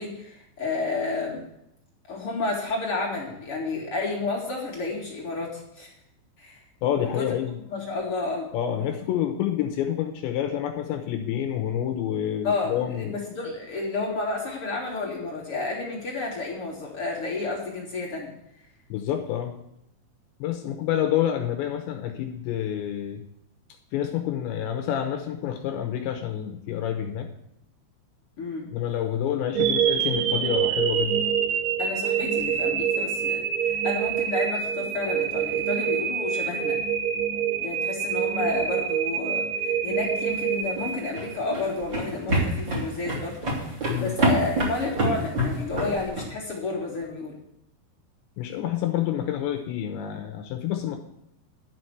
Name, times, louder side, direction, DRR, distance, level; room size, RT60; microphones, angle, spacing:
voice 1, 0.0-1.4 2.1-5.9 6.4-6.6 7.0-7.3 7.7-8.5 12.4-18.3 28.4-28.7 31.8-36.8 37.6-47.3, left 3 dB, 45° left, -2 dB, 1.9 m, -31 dB
voice 2, 6.8-7.6 8.5-13.1 18.9-19.6 20.4-23.2 23.9-27.3 28.7-31.2 43.9-44.1 48.4-51.0, left 10 dB, 75° left, 6 dB, 2.9 m, -28 dB
sound 1, 29.6-41.7, right 8 dB, 75° right, 3.3 m, -26 dB
sound 2, 40.6-46.3, right 1 dB, 30° right, 2.7 m, -26 dB
12.0 x 6.0 x 7.9 m, 0.81 s
omnidirectional pair, 5.8 m